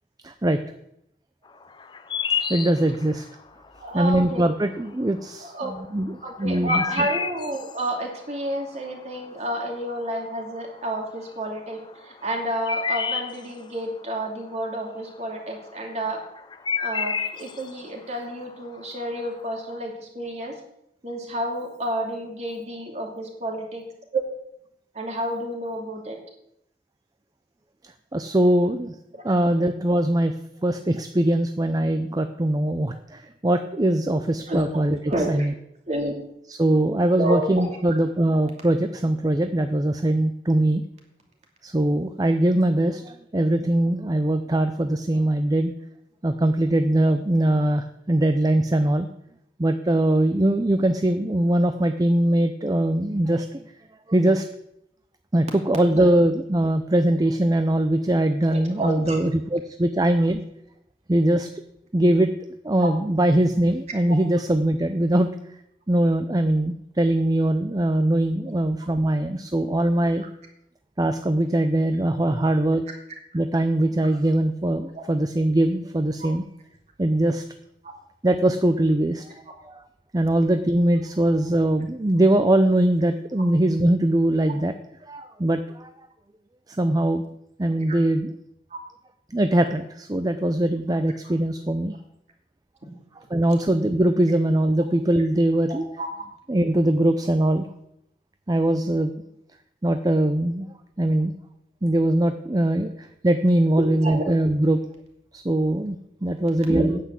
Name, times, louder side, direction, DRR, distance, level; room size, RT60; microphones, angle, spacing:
voice 1, 0.2-0.6 2.5-3.2 3.9-6.8 28.1-28.9 29.2-30.3 30.6-35.0 35.3-35.5 36.5-40.8 41.6-45.7 46.2-49.1 49.6-53.7 54.1-54.4 55.3-60.4 61.1-61.5 61.9-62.3 62.6-65.3 65.9-70.2 71.0-72.8 73.3-76.4 77.0-77.4 78.2-79.8 80.1-84.7 85.1-85.9 86.7-87.2 87.6-88.3 89.3-92.0 93.3-95.8 96.5-97.7 98.5-99.1 99.8-100.7 101.0-101.3 101.8-104.8 105.3-107.0, right 1 dB, 20° right, 8 dB, 0.6 m, -21 dB
sound 1, 1.5-19.8, left 6 dB, 25° left, 0.6 m, -32 dB
voice 2, 3.8-4.4 5.4-5.7 6.2-16.2 16.8-20.5 21.0-23.8 24.1-24.2 24.9-26.2 34.5-34.8 35.0-35.5 35.9-36.1 37.2-37.6 56.0-56.1 58.5-59.2 62.8-62.9 74.9-75.0 77.8-77.9 87.9-88.0 88.7-88.8 95.7-96.1 104.0-104.2 106.7-106.9, right 1 dB, 40° right, 1 dB, 2.7 m, -30 dB
9.6 x 8.2 x 7.7 m, 0.79 s
head